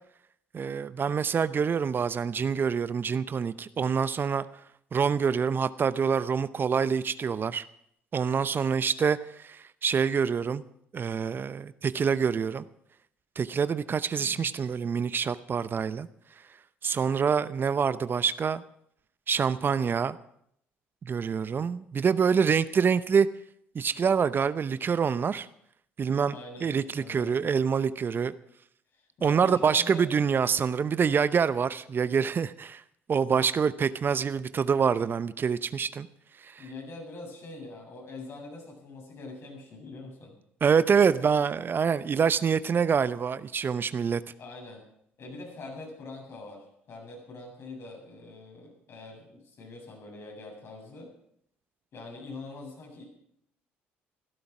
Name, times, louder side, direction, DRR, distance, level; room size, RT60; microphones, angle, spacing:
voice 1, 0.5-4.4 4.9-7.6 8.1-10.6 10.9-12.6 13.4-16.1 16.8-18.6 19.3-20.2 21.0-23.3 23.7-25.5 26.0-26.3 26.6-28.3 29.2-32.8 33.1-36.1 36.4-36.6 40.6-44.2, right 6 dB, 40° right, 15 dB, 0.7 m, -26 dB
voice 2, 14.1-14.5 26.3-27.3 28.9-30.1 36.6-40.4 44.4-44.8 45.2-51.1 51.9-53.0, left 3 dB, 55° left, 0 dB, 7.5 m, -44 dB
15.5 x 13.0 x 6.1 m, 0.70 s
hypercardioid pair, 60°, 5 cm